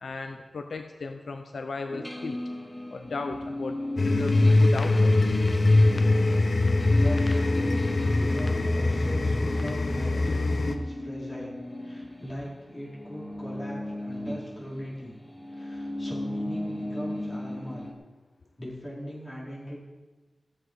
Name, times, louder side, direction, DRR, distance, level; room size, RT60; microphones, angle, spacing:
voice 1, 0.0-2.4 2.9-5.3, left 4 dB, 90° left, 6 dB, 0.6 m, -36 dB
sound 1, 1.9-12.5 12.8-17.9, left 1 dB, 10° left, 1.4 m, -36 dB
sound 2, 4.0-10.8, left 2 dB, 60° left, 0.9 m, -22 dB
voice 2, 6.8-7.8 8.1-11.6 11.8-15.1 15.5-17.8 18.6-19.8, equal, 35° left, -6 dB, 4.3 m, -40 dB
13.5 x 8.0 x 4.9 m, 1.3 s
wide cardioid pair, 75°, 0 cm